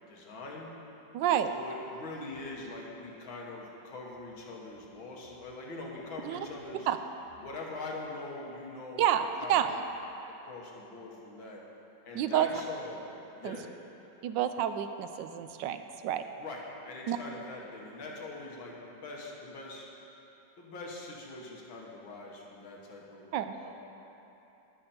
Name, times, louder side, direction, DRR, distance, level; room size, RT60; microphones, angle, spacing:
voice 1, 0.1-0.7 1.5-6.9 7.4-9.8 10.3-11.6 12.1-13.0 13.4-13.6 16.4-19.9 20.6-23.7, left 2 dB, 80° left, -2 dB, 2.3 m, -43 dB
voice 2, 1.1-1.5 6.2-6.4 6.9-7.0 9.0-9.7 12.1-12.5 13.4-13.6 14.2-16.2 17.1-17.2 23.3-23.5, right 10 dB, 75° right, 9 dB, 1.1 m, -29 dB
19.0 x 7.0 x 4.3 m, 3.0 s
omnidirectional pair, 2.1 m